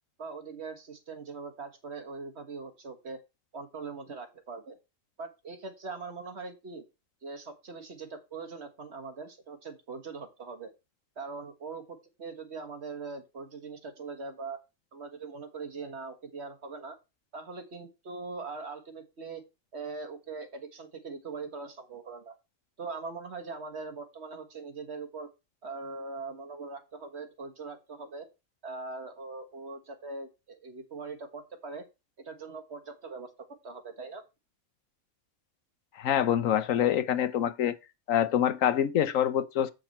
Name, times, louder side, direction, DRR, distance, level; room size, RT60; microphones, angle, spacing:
voice 1, 0.2-3.2 3.5-4.8 5.2-6.8 7.2-10.7 11.2-14.6 14.9-17.0 17.3-19.4 19.7-22.3 22.8-25.3 25.6-28.3 28.6-31.8 32.3-33.3 33.6-34.2, right 4 dB, 55° right, 1.9 m, -41 dB
voice 2, 36.0-37.7 38.1-39.7, left 10 dB, 90° left, 1.2 m, -25 dB
7.9 x 6.0 x 4.3 m
omnidirectional pair, 1.3 m